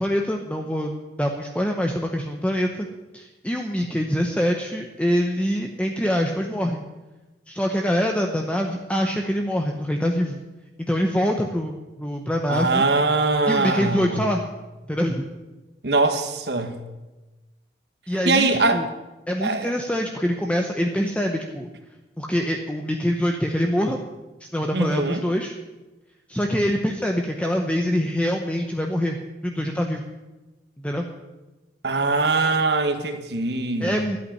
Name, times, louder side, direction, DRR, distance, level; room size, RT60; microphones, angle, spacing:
voice 1, 0.0-2.9 3.1-6.8 7.5-10.4 10.9-12.9 13.5-14.4 14.9-15.2 18.1-18.9 19.3-21.7 22.2-24.0 24.5-25.5 26.3-29.2 29.4-30.0 30.8-31.1 33.8-34.2, equal, 5° left, 0.8 m, -24 dB
voice 2, 12.5-14.2 15.8-16.8 18.2-18.9 19.4-19.7 24.7-25.3 31.8-34.0, right 3 dB, 65° right, 1.4 m, -22 dB
11.5 x 8.5 x 9.9 m
head